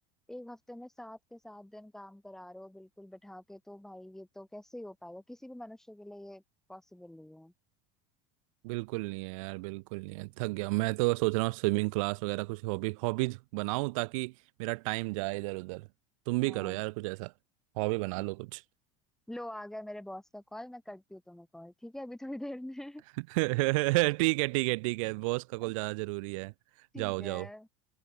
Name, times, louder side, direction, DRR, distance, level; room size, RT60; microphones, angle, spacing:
voice 1, 0.3-6.4 6.7-7.5 16.4-16.8 18.2-18.3 19.3-23.0 25.6-25.7 26.9-27.7, left 1 dB, 5° left, 3.1 m, -45 dB
voice 2, 8.6-14.3 14.6-15.9 16.3-17.3 17.8-18.6 23.3-26.5 27.0-27.5, right 25 dB, 80° right, 0.5 m, -31 dB
cardioid pair, 155°, 17 cm